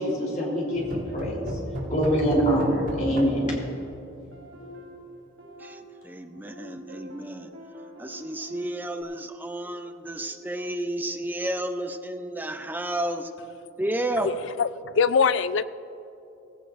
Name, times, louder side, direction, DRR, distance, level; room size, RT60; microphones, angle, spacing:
voice 1, 0.0-1.5 1.9-3.6, equal, 40° left, -4 dB, 3.6 m, -24 dB
sound 1, 0.7-4.5, equal, 65° right, 3.2 m, -34 dB
sound 2, 0.7-1.9 2.4-9.0, equal, 85° right, 3.6 m, -47 dB
voice 2, 5.4-7.5 8.0-13.3 13.8-14.3, right 1 dB, 10° right, 7 dB, 0.6 m, -31 dB
voice 3, 14.2-15.6, left 5 dB, 65° left, 15 dB, 0.4 m, -23 dB
18.0 x 16.5 x 2.6 m, 2.8 s
head